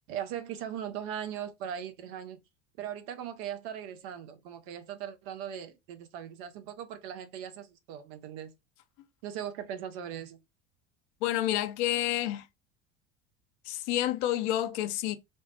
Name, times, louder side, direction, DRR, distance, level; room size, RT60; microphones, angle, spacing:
voice 1, 0.1-2.4 2.8-8.5 9.2-10.4, right 9 dB, 55° right, 0.7 m, -39 dB
voice 2, 11.2-12.5 13.6-15.2, left 13 dB, 50° left, 0.6 m, -29 dB
3.2 x 2.0 x 2.7 m
figure-of-eight pair, 75°, 34 cm